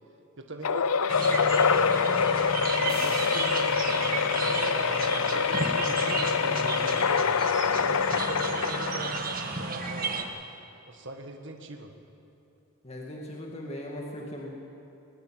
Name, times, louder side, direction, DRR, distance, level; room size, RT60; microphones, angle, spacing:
voice 1, 0.4-1.8 2.8-7.2 7.7-10.3 10.9-11.9, right 2 dB, 55° right, 4 dB, 1.7 m, -41 dB
sound 1, 0.6-9.4, left 6 dB, 90° left, 0.7 m, -25 dB
sound 2, 1.1-10.2, right 4 dB, 40° right, 1.7 m, -33 dB
sound 3, 2.8-5.5, left 4 dB, 45° left, 2.6 m, -46 dB
voice 2, 12.8-14.5, left 1 dB, 30° left, -1 dB, 2.2 m, -38 dB
21.0 x 20.0 x 7.8 m, 2.8 s
head